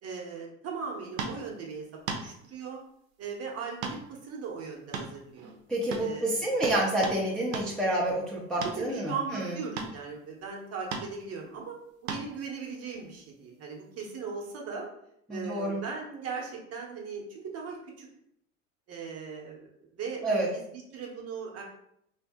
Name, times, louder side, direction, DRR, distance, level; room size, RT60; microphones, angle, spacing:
voice 1, 0.0-2.8 3.2-5.5 6.0-6.4 8.8-14.9 15.3-18.1 18.9-21.6, right 5 dB, 35° right, -1 dB, 0.9 m, -39 dB
sound 1, 1.2-1.4 2.1-2.3 3.8-4.0 4.3-4.4 4.9-5.6 5.9-6.1 6.6-7.2 7.5-7.7 8.6-8.8 9.8-10.0 10.9-11.1 12.1-12.3 14.0-14.1, right 4 dB, 80° right, 0.7 m, -35 dB
voice 2, 5.7-9.6 15.3-15.8 20.2-20.5, right 1 dB, ahead, -5 dB, 0.7 m, -28 dB
2.7 x 2.6 x 3.5 m, 0.74 s
hypercardioid pair, 95°, 40 cm